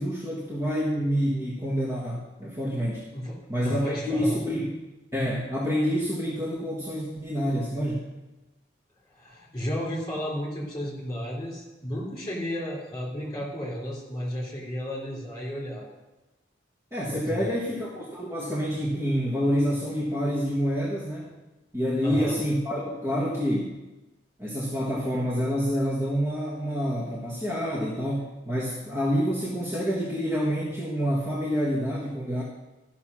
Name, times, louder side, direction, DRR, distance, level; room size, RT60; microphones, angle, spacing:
voice 1, 0.0-3.0 3.5-4.7 5.1-8.1 16.9-21.3 21.7-23.8 24.4-32.4, equal, 15° right, -6 dB, 1.4 m, -27 dB
voice 2, 3.1-4.4 9.1-15.9 17.1-17.6 22.0-22.4, equal, 20° left, -3 dB, 3.2 m, -33 dB
13.0 x 5.9 x 6.2 m, 1.1 s
head